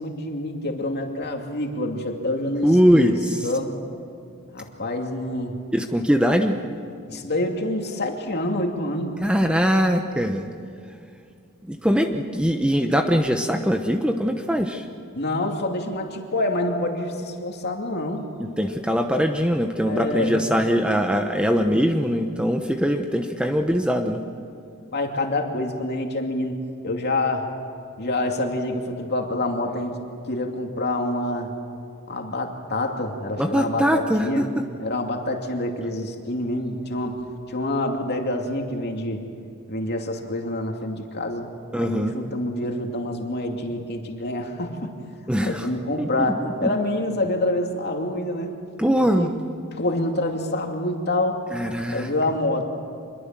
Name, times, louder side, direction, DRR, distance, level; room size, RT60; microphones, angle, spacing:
voice 1, 0.0-3.2 3.4-3.7 4.5-5.5 7.1-9.2 15.1-18.2 19.8-20.5 24.9-27.5 28.0-30.0 30.3-31.5 32.1-34.5 34.8-39.2 39.7-41.5 41.8-44.9 45.4-48.6 49.1-49.4 49.7-51.4 51.9-52.7, left 1 dB, 50° left, 2 dB, 2.6 m, -27 dB
voice 2, 2.6-3.1 5.7-6.5 9.2-10.4 11.7-14.9 18.6-24.2 33.4-34.5 41.7-42.1 45.3-45.7 46.6-46.7 48.8-49.3 51.5-52.1, equal, 5° right, 5 dB, 0.9 m, -21 dB
26.0 x 21.5 x 7.6 m, 2.4 s
head